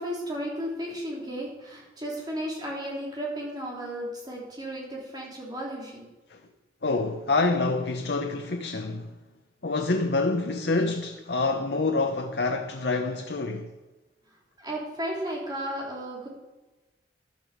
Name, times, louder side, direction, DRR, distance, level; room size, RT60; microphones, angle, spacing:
voice 1, 0.0-6.1 13.1-13.2 14.6-16.3, equal, 25° right, 3.5 m, -34 dB
voice 2, 6.8-9.2 9.6-13.7, left 3 dB, 70° left, 0.9 m, -27 dB
13.5 x 11.0 x 5.1 m
head